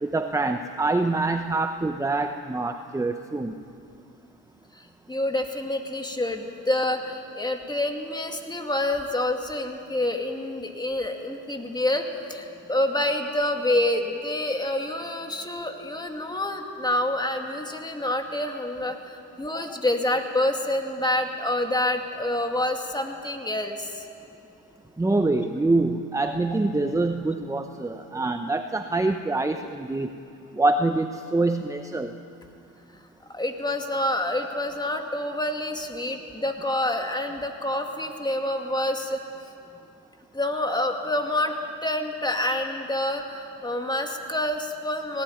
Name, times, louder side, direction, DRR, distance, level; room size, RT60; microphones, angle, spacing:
voice 1, 0.0-3.5 25.0-30.1 30.5-32.1, right 2 dB, 10° right, 7 dB, 0.8 m, -25 dB
voice 2, 4.7-24.1 33.3-39.2 40.3-41.6 41.8-45.2, left 1 dB, 15° left, 4 dB, 2.4 m, -27 dB
18.5 x 18.5 x 9.4 m, 2.5 s
cardioid pair, 90°, 30 cm